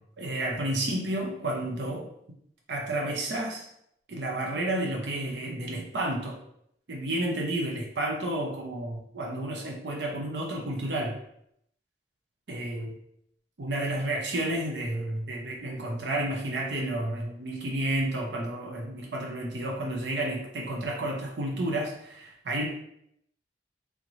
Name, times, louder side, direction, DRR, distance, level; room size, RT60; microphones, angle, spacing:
voice 1, 0.0-2.1 2.7-3.7 4.1-6.4 6.9-11.2 12.5-12.9 13.6-22.7, right 1 dB, 80° right, 0 dB, 0.6 m, -31 dB
3.6 x 3.0 x 2.6 m, 0.73 s
head